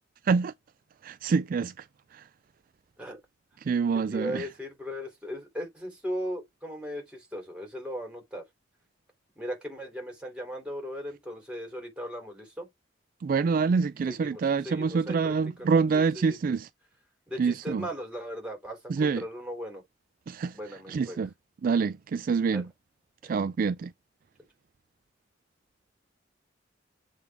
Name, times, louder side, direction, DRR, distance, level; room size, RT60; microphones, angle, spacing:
voice 1, 1.0-1.7 2.1-2.2 3.7-4.5 13.2-16.7 17.4-17.8 18.9-19.2 20.3-20.5 20.9-21.3 21.6-22.7 23.3-23.9, right 5 dB, 50° right, 0.3 m, -26 dB
voice 2, 4.1-8.4 9.3-12.7 14.1-16.4 17.3-19.8 20.5-21.2 22.5-22.6 23.2-23.4, equal, 5° right, 3.2 m, -38 dB
7.8 x 3.5 x 3.5 m
head